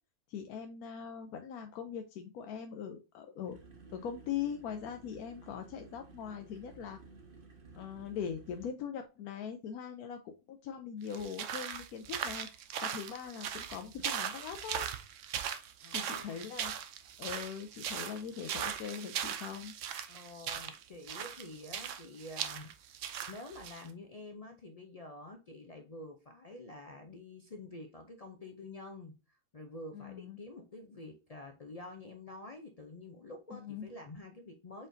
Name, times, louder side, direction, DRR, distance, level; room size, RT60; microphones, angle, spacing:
voice 1, 0.3-3.6 3.9-7.0 7.7-12.5 12.8-14.9 15.9-16.7 17.2-19.7 29.9-30.4 33.5-33.9, left 8 dB, 90° left, 1.1 m, -41 dB
sound 1, 3.4-8.7, right 4 dB, 40° right, 1.1 m, -55 dB
sound 2, 11.1-23.9, right 9 dB, 65° right, 0.9 m, -39 dB
voice 2, 15.8-16.5 20.1-22.7 23.3-34.9, left 2 dB, 75° left, 0.3 m, -48 dB
4.8 x 4.3 x 2.6 m
omnidirectional pair, 1.5 m